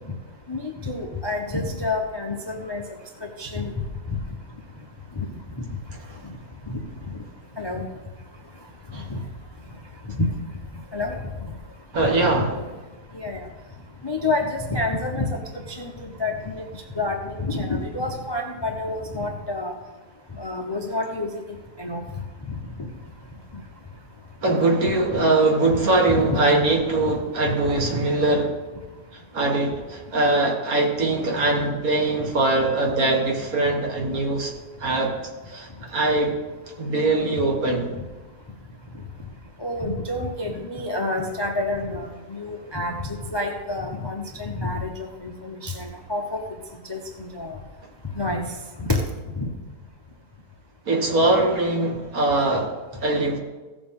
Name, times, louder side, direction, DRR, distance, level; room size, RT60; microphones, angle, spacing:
voice 1, 0.5-2.8 3.4-3.9 5.2-5.3 6.7-6.8 7.6-7.8 9.1-9.2 10.2-10.3 10.9-11.2 12.0-12.4 13.1-13.5 14.0-15.4 15.7-15.9 16.2-16.6 17.0-19.7 20.4-22.0 22.5-22.6 25.1-25.2 25.8-26.4 28.3-28.4 39.6-44.9 45.2-46.4 46.9-47.6 48.2-48.4 48.8-49.0 49.4-49.5, left 2 dB, 30° left, 2 dB, 0.5 m, -28 dB
voice 2, 11.9-12.6 24.4-28.5 29.1-34.5 34.8-35.1 35.5-36.4 36.8-37.9 50.9-53.4, right 2 dB, 60° right, 1 dB, 2.0 m, -22 dB
16.0 x 7.0 x 3.7 m, 1.2 s
omnidirectional pair, 1.8 m